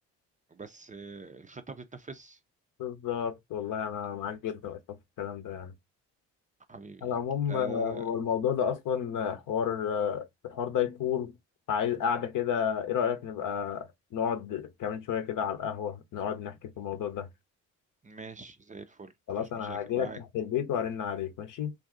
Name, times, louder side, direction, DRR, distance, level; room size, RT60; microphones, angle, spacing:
voice 1, 0.5-2.4 6.7-7.2 7.5-8.1 18.0-20.2, right 4 dB, 20° right, 0.5 m, -44 dB
voice 2, 2.8-5.7 7.0-11.3 11.7-17.3 19.3-21.7, left 8 dB, 60° left, 0.7 m, -31 dB
2.6 x 2.3 x 3.6 m
hypercardioid pair, 50°, 35 cm